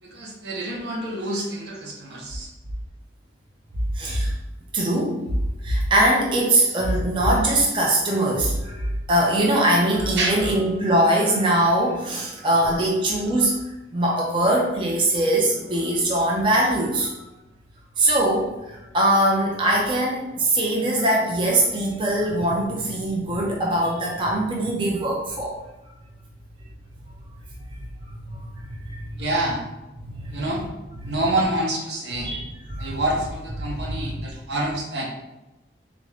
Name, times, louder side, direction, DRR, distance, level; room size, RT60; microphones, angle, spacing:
voice 1, 0.0-2.5 10.2-10.4 12.6-12.9 29.2-29.7 30.3-30.6 31.1-32.3 32.8-35.1, right 1 dB, 80° right, -1 dB, 0.8 m, -27 dB
voice 2, 3.9-4.3 4.7-5.2 5.6-13.6 13.9-17.2 18.0-25.5 28.4-29.2 30.0-30.3 31.0-31.1 32.2-33.0 34.0-34.1, right 1 dB, 30° right, -1 dB, 0.4 m, -22 dB
3.5 x 2.5 x 3.2 m, 1.0 s
head